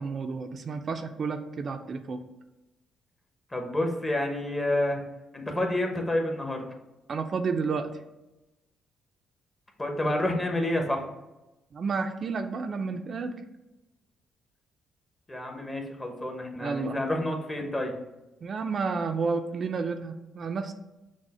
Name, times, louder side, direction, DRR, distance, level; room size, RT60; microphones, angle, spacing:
voice 1, 0.0-2.2 7.1-7.9 11.7-13.4 16.6-17.0 18.4-20.7, right 4 dB, 50° right, 6 dB, 0.4 m, -31 dB
voice 2, 3.5-5.0 5.3-6.7 9.8-11.1 15.3-17.9, left 1 dB, 20° left, 2 dB, 0.9 m, -29 dB
6.1 x 2.1 x 4.1 m, 1.0 s
cardioid pair, 90°, 0 cm